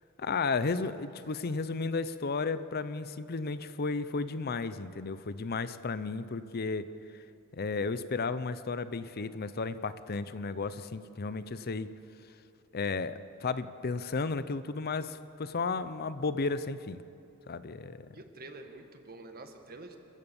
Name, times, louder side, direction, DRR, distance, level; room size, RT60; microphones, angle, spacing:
voice 1, 0.2-6.9 7.1-7.2 7.5-11.9 12.7-17.0 17.5-18.1, left 4 dB, 45° left, 13 dB, 0.6 m, -33 dB
voice 2, 18.1-20.0, right 2 dB, 45° right, 5 dB, 1.9 m, -48 dB
29.0 x 15.0 x 7.1 m, 2.7 s
head